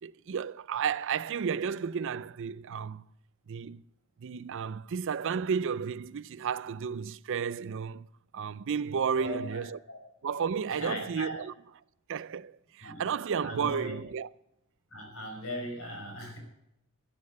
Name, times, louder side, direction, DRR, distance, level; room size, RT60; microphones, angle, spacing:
voice 1, 0.0-3.1 3.5-3.8 4.2-8.1 8.3-9.8 10.2-11.5 12.1-14.3, right 6 dB, 60° right, 0.4 m, -32 dB
voice 2, 9.1-10.0 10.7-11.4 12.8-13.0 13.4-13.9 14.9-16.4, left 1 dB, 65° left, 5.5 m, -39 dB
13.0 x 8.7 x 8.4 m
head